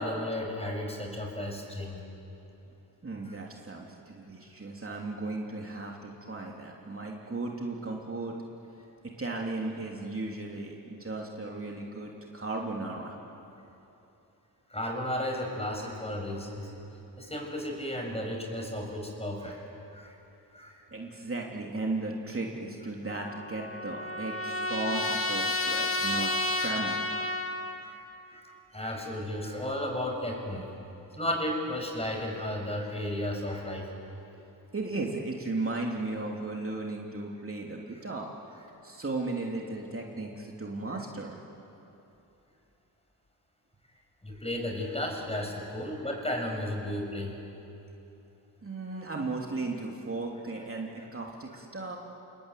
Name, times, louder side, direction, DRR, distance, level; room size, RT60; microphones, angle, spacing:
voice 1, 0.0-2.0 3.3-3.4 14.7-16.7 17.2-19.7 19.9-20.1 20.5-20.8 27.8-28.0 28.3-30.7 31.1-33.9 44.2-47.3, left 1 dB, 15° left, 1 dB, 7.0 m, -34 dB
voice 2, 3.0-8.3 9.2-13.1 20.9-27.0 34.7-38.3 38.8-41.4 48.6-52.0, right 2 dB, 30° right, -1 dB, 3.2 m, -35 dB
Trumpet, 23.1-27.8, left 2 dB, 30° left, 2.4 m, -31 dB
29.0 x 20.5 x 9.3 m, 3.0 s
cardioid pair, 70°, 43 cm